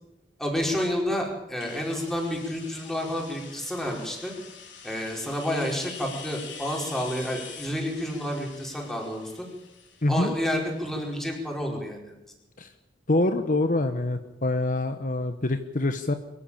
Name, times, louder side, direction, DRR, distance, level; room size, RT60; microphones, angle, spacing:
voice 1, 0.4-4.3 4.8-9.5 10.1-12.1, equal, ahead, -1 dB, 4.9 m, -30 dB
sound 1, 1.6-11.2, left 6 dB, 90° left, 4.4 m, -45 dB
voice 2, 10.0-10.3 12.6-12.7 13.1-16.1, left 2 dB, 45° left, 8 dB, 1.1 m, -25 dB
23.0 x 14.0 x 8.8 m, 0.96 s
head